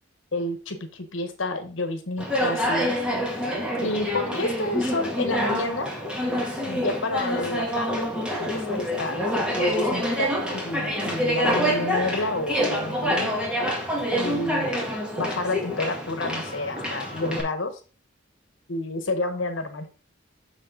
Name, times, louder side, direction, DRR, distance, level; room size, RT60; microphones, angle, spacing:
voice 1, 0.3-2.9 3.8-5.9 6.7-8.1 8.4-9.2 9.5-13.3 14.1-14.7 15.2-17.7 18.7-19.9, left 2 dB, 80° left, 7 dB, 1.2 m, -30 dB
Conversation, 2.2-17.4, equal, 5° right, 2.0 m, -27 dB
6.6 x 6.5 x 3.9 m, 0.34 s
head